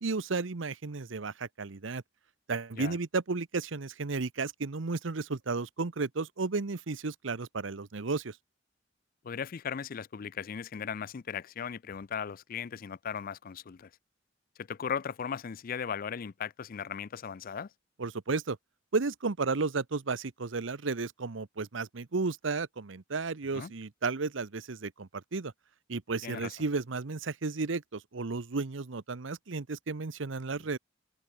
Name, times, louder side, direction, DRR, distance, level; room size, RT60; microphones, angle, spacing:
voice 1, 0.0-2.0 2.5-8.4 18.0-18.6 18.9-25.5 25.9-30.8, right 4 dB, 75° right, 0.9 m, -33 dB
voice 2, 9.2-13.9 14.6-17.7 23.5-23.7 26.2-26.5, left 7 dB, 45° left, 0.4 m, -37 dB
head